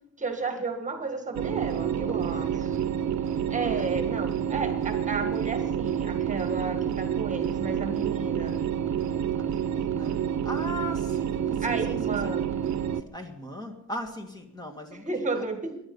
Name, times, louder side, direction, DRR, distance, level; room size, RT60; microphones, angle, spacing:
voice 1, 0.2-2.8 3.5-8.5 11.6-12.5 15.0-15.8, right 4 dB, 25° right, 6 dB, 1.7 m, -32 dB
sound 1, 1.3-13.0, right 9 dB, 65° right, 0.9 m, -28 dB
voice 2, 2.1-2.8 3.7-3.9 9.3-12.4 12.9-15.5, left 1 dB, 15° left, 4 dB, 1.8 m, -40 dB
23.0 x 10.5 x 5.4 m, 0.83 s
cardioid pair, 145°, 30 cm